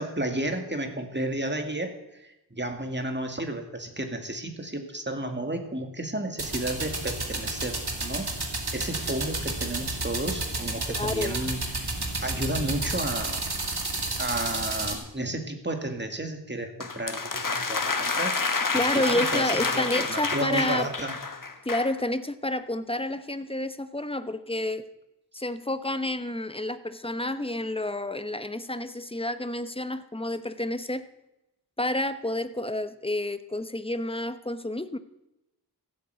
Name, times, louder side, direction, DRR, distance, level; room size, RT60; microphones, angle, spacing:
voice 1, 0.0-8.3 8.7-11.9 12.2-13.4 14.2-18.7 18.9-21.1, right 1 dB, 25° right, 5 dB, 2.2 m, -32 dB
sound 1, 6.4-15.0, right 2 dB, 70° right, 2.4 m, -31 dB
voice 2, 10.9-11.5 18.7-20.9 21.6-24.8 25.3-31.0 31.8-35.0, left 1 dB, 15° left, 12 dB, 0.9 m, -29 dB
sound 2, 16.8-22.0, left 4 dB, 50° left, 1.3 m, -29 dB
15.0 x 8.1 x 8.2 m, 0.92 s
wide cardioid pair, 45°, 41 cm